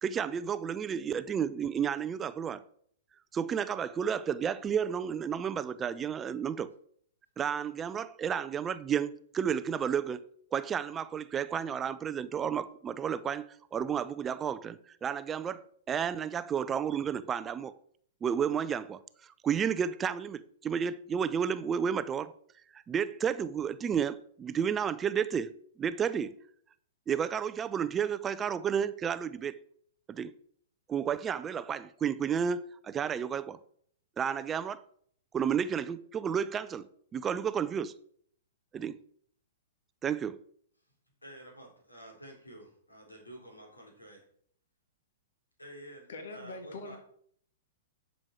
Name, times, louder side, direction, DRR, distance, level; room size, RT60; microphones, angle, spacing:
voice 1, 0.0-2.6 3.3-6.7 7.4-10.2 10.5-17.7 18.2-22.3 22.7-25.5 25.8-26.3 27.1-29.6 30.1-30.3 30.9-33.6 34.2-34.8 35.3-36.9 37.1-37.9 38.7-39.0 40.0-40.4, right 7 dB, 20° right, 0.4 m, -32 dB
voice 2, 41.2-44.2 45.6-47.0, right 1 dB, 90° left, 3.7 m, -50 dB
voice 3, 46.1-47.0, left 2 dB, 60° left, 1.7 m, -42 dB
11.0 x 6.3 x 4.6 m
figure-of-eight pair, 110°, 0 cm